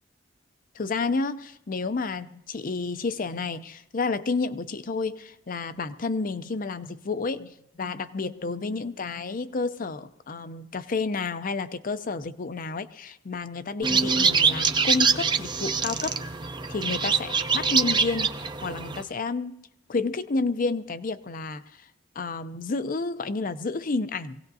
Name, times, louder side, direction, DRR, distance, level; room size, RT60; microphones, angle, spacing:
voice 1, 0.7-16.2 16.7-18.3 18.6-19.6 19.9-21.9 22.2-24.4, left 3 dB, 45° left, 12 dB, 0.6 m, -30 dB
sound 1, 13.8-19.0, right 5 dB, 25° right, 0.6 m, -24 dB
23.5 x 17.5 x 2.7 m, 0.83 s
head